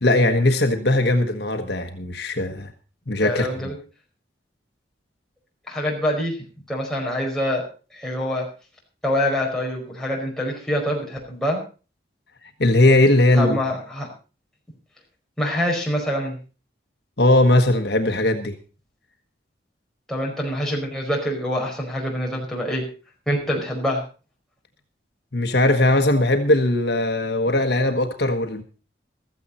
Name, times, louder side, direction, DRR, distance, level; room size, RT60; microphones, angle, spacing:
voice 1, 0.0-2.7 3.1-3.5 12.6-13.6 17.2-18.6 25.3-28.6, left 1 dB, 65° left, 5 dB, 1.4 m, -19 dB
voice 2, 3.2-3.7 5.7-6.4 6.7-7.6 7.9-8.5 9.0-11.6 13.4-14.1 15.4-16.4 20.1-22.8 23.3-24.0, equal, 5° left, -2 dB, 5.0 m, -25 dB
15.5 x 14.0 x 4.3 m, 0.36 s
head